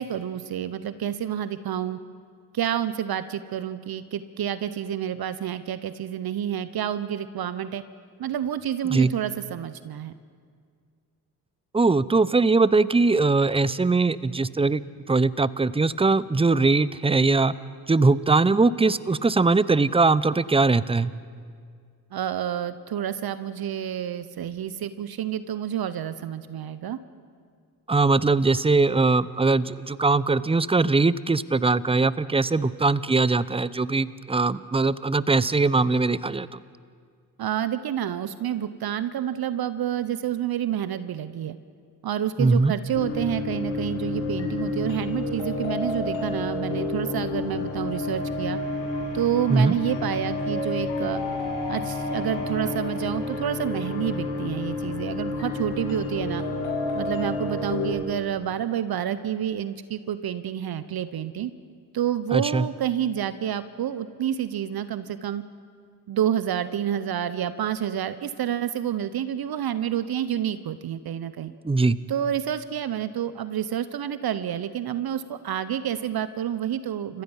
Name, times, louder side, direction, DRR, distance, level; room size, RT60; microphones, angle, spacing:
voice 1, 0.0-2.0 2.5-7.8 8.2-10.1 22.1-27.0 37.4-41.6 42.0-48.6 49.1-51.2 51.7-56.4 56.9-61.5 61.9-65.4 66.1-71.5 72.1-77.2, right 10 dB, 50° right, 14 dB, 1.0 m, -29 dB
voice 2, 11.7-14.8 15.1-17.5 17.9-21.1 27.9-36.6 42.4-42.7 49.5-49.7 62.3-62.6 71.6-72.0, right 3 dB, 10° right, 18 dB, 0.7 m, -21 dB
sound 1, 42.9-57.9, left 3 dB, 70° left, 4.2 m, -30 dB
30.0 x 15.5 x 5.6 m, 2.1 s
hypercardioid pair, 50°, 47 cm